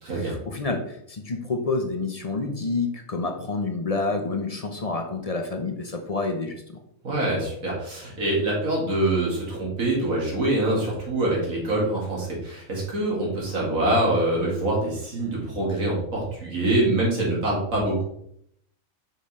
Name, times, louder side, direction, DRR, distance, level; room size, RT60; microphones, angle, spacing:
voice 1, 0.1-6.8, left 3 dB, 35° left, 4 dB, 0.6 m, -28 dB
voice 2, 7.0-18.0, right 1 dB, 80° right, -4 dB, 2.5 m, -25 dB
5.4 x 5.0 x 4.2 m, 0.71 s
omnidirectional pair, 1.4 m